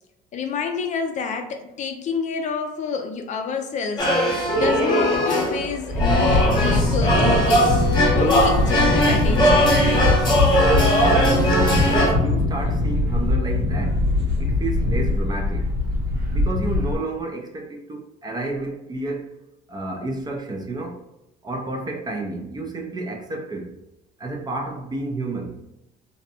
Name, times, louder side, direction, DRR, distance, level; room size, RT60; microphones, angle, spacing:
voice 1, 0.3-4.1 4.5-7.7 8.1-9.8, left 5 dB, 40° left, 0.4 m, -28 dB
sound 1, 4.0-12.1, equal, 25° left, 0.8 m, -20 dB
sound 2, 5.9-17.0, left 2 dB, 85° right, 1.2 m, -22 dB
voice 2, 11.5-14.0 14.4-15.7 16.3-19.3 19.7-21.0 21.4-23.7 24.2-25.6, right 2 dB, 20° right, 0.4 m, -30 dB
2.6 x 2.1 x 2.7 m
cardioid pair, 115°, 18 cm